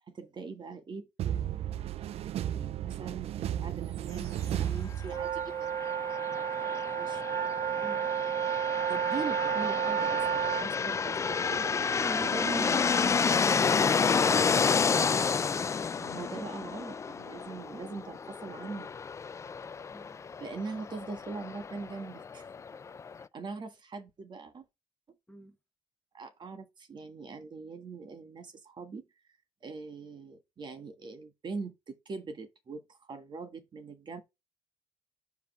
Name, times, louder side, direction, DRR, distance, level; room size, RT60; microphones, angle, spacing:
voice 1, 0.1-1.7 2.2-5.9 6.3-7.2 8.9-11.7 12.2-12.9 16.0-18.9 20.4-22.5 23.3-24.6 26.1-29.0 29.6-34.2, right 4 dB, 35° right, 1.6 m, -42 dB
sound 1, 1.2-5.7, right 11 dB, 55° right, 0.4 m, -34 dB
sound 2, 5.0-10.7, right 9 dB, 75° right, 0.8 m, -31 dB
sound 3, 5.6-23.2, left 5 dB, 25° left, 0.4 m, -30 dB
voice 2, 11.6-12.5 19.9-20.2 25.3-25.6, left 2 dB, 5° left, 1.3 m, -43 dB
5.3 x 5.0 x 5.9 m
cardioid pair, 100°, 13 cm